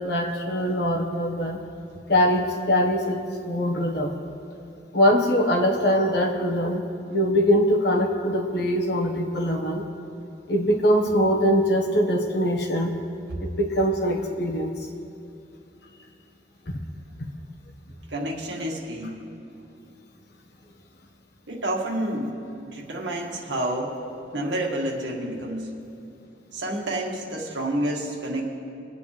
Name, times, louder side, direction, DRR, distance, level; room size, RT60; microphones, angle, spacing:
voice 1, 0.0-1.6 2.1-4.1 4.9-9.8 10.5-12.9 13.4-14.7 16.7-16.8 17.2-17.3, equal, 65° left, 1 dB, 1.5 m, -22 dB
voice 2, 18.1-19.1 21.5-24.0 24.3-25.7 26.5-28.4, right 1 dB, 75° right, -1 dB, 1.9 m, -29 dB
23.0 x 8.4 x 3.4 m, 2.7 s
head